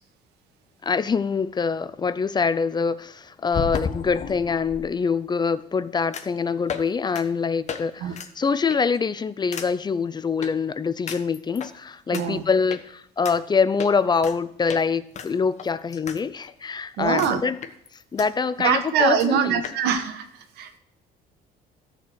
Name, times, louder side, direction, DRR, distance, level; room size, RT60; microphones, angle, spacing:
voice 1, 0.8-17.6 18.1-19.6, left 5 dB, 25° left, 0.5 m, -24 dB
sound 1, 3.5-4.8 6.1-6.4 6.7-6.9 7.1-7.2 7.7-7.8 8.1-8.3 8.7-9.0 9.5-9.7 10.4-10.5 11.1-11.7 12.1-12.2 12.7-12.8 13.2-13.4 13.8-14.4 14.7-14.8 15.1-16.2 16.5-16.6 17.2-17.3 17.6-18.3 18.6-18.7 18.9-19.0 19.2-19.3 19.6-19.8, left 6 dB, 45° left, 1.2 m, -33 dB
voice 2, 12.1-12.4 17.0-17.4 18.6-20.8, right 7 dB, 80° right, 1.3 m, -24 dB
13.5 x 4.5 x 7.8 m
cardioid pair, 110°, 17 cm